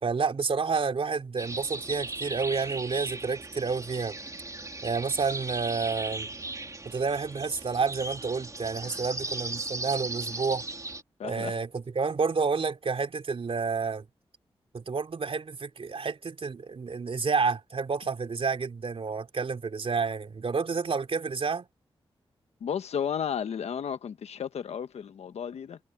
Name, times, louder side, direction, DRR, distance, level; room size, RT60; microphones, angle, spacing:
voice 1, 0.0-4.2 4.8-6.3 6.8-10.6 11.2-14.1 14.7-21.7, right 5 dB, 60° right, 3.2 m, -29 dB
sound 1, 1.4-11.0, right 2 dB, 30° right, 2.8 m, -37 dB
voice 2, 11.2-11.5 22.6-25.8, left 8 dB, 85° left, 1.3 m, -33 dB
cardioid pair, 45°, 11 cm